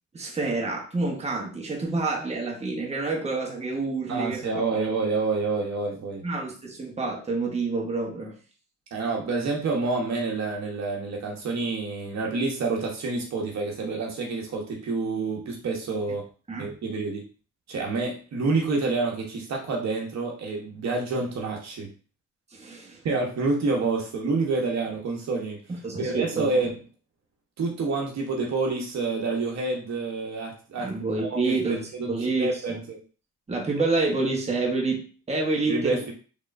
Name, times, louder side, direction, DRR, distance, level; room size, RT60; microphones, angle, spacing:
voice 1, 0.1-4.6 6.2-8.3 16.5-16.7 22.5-23.0 25.7-26.5 30.8-32.8 33.5-36.0, right 3 dB, 20° right, -1 dB, 1.2 m, -28 dB
voice 2, 4.1-6.2 8.9-16.2 16.6-17.2 17.7-21.9 23.0-25.6 26.0-26.7 27.6-30.9 31.2-32.1 32.4-32.7 35.7-36.1, right 3 dB, 60° right, -1 dB, 1.0 m, -28 dB
3.5 x 3.4 x 2.5 m, 0.37 s
cardioid pair, 90°, 30 cm